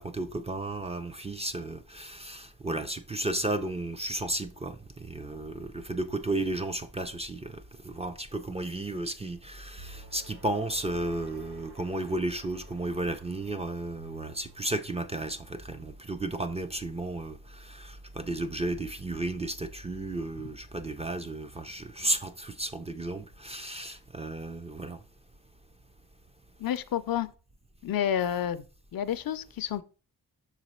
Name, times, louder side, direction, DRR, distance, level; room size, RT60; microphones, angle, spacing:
voice 1, 0.0-25.0, right 2 dB, 20° right, 0.4 m, -33 dB
sound 1, 9.7-18.1, right 2 dB, 90° right, 1.8 m, -58 dB
sound 2, 9.8-10.8 14.0-14.9, right 3 dB, 65° right, 0.9 m, -53 dB
voice 2, 26.6-27.3 27.8-28.6 28.9-29.8, left 10 dB, 70° left, 0.5 m, -29 dB
6.0 x 4.0 x 4.2 m
wide cardioid pair, 130°, 37 cm